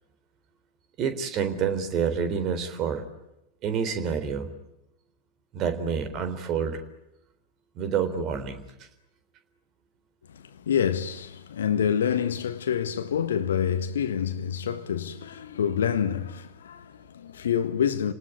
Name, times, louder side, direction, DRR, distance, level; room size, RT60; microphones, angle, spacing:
voice 1, 1.0-3.0 3.6-4.5 5.5-6.8 7.8-8.6, right 6 dB, 35° right, 3.7 m, -28 dB
voice 2, 10.3-18.1, left 8 dB, 65° left, 1.5 m, -27 dB
30.0 x 19.0 x 9.6 m
figure-of-eight pair, 90°, 0 cm